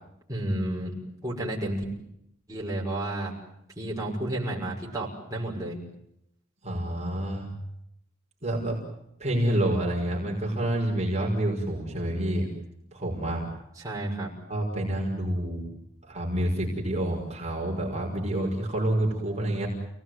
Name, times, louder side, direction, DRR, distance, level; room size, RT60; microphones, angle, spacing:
voice 1, 0.3-0.9 1.2-1.8 2.5-3.3 3.8-5.8 13.8-14.3, right 1 dB, 15° right, -4 dB, 6.3 m, -31 dB
voice 2, 6.6-7.5 8.4-8.8 9.2-12.5 12.9-13.5 14.5-15.7 16.0-19.7, right 1 dB, 35° right, -2 dB, 5.7 m, -28 dB
30.0 x 18.5 x 9.4 m, 0.78 s
head